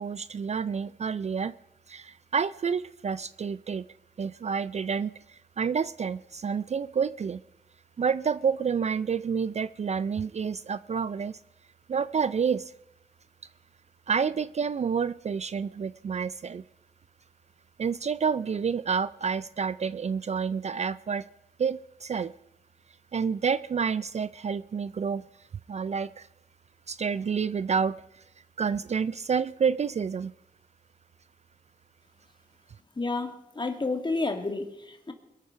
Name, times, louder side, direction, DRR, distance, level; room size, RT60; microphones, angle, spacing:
voice 1, 0.0-1.5 1.9-3.9 4.2-7.4 8.0-11.4 11.9-12.7 14.1-16.6 17.8-21.3 21.6-22.3 23.1-25.2 25.7-26.3 26.9-28.2 28.6-30.3, right 6 dB, 45° right, 16 dB, 0.4 m, -29 dB
voice 2, 33.0-35.1, left 3 dB, 30° left, 5 dB, 2.0 m, -30 dB
22.0 x 8.3 x 5.6 m, 0.86 s
cardioid pair, 70°, 16 cm